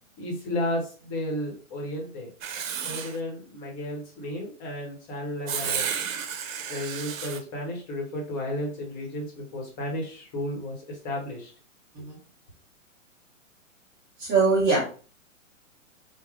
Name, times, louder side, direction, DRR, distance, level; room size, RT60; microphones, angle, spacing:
voice 1, 0.2-2.3 2.8-5.9 6.7-11.5, left 1 dB, 20° left, 0 dB, 0.9 m, -33 dB
Writing, 2.4-3.2 5.5-7.4, right 7 dB, 80° right, 0.7 m, -32 dB
voice 2, 14.2-14.9, right 4 dB, 20° right, -5 dB, 0.7 m, -23 dB
3.6 x 2.1 x 3.5 m, 0.38 s
hypercardioid pair, 155°, 40 cm